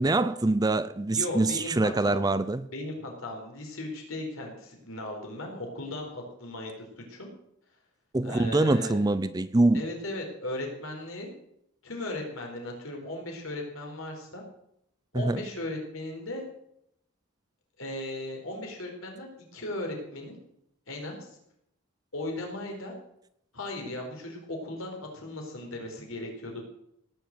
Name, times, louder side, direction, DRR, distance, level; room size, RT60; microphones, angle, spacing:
voice 1, 0.0-2.6 8.1-9.8 15.1-15.4, right 2 dB, 20° right, 14 dB, 0.5 m, -24 dB
voice 2, 1.1-2.2 2.7-7.3 8.2-9.0 9.7-11.3 11.8-14.4 15.1-16.4 17.8-20.4 20.9-21.3 22.1-22.9 23.5-26.6, left 1 dB, 80° left, 1 dB, 4.4 m, -37 dB
18.0 x 7.1 x 7.8 m, 0.77 s
head